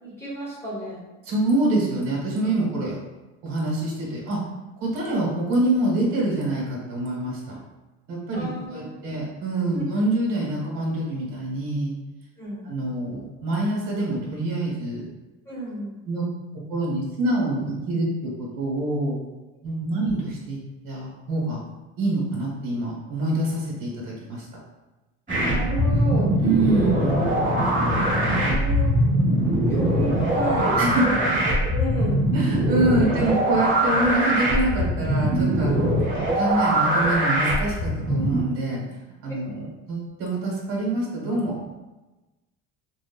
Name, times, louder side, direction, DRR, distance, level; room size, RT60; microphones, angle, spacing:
voice 1, 0.0-1.0 8.3-8.9 9.8-9.9 12.4-12.7 15.5-15.9 25.4-26.4 26.8-27.2 27.7-29.0 29.7-32.2 33.2-33.3, equal, 5° left, -8 dB, 0.9 m, -32 dB
voice 2, 1.2-3.0 3.4-4.4 4.8-7.5 8.1-11.9 12.6-15.0 16.0-16.2 16.7-19.2 19.6-20.6 20.8-21.6 22.0-24.5 26.4-27.2 30.8-31.0 31.3-31.4 32.3-35.9 36.3-38.8 39.2-41.7, right 2 dB, 70° right, -4 dB, 1.3 m, -26 dB
sound 1, 25.3-38.4, right 1 dB, 20° right, 1.1 m, -22 dB
3.0 x 2.1 x 2.3 m, 1.1 s
supercardioid pair, 115°, 35 cm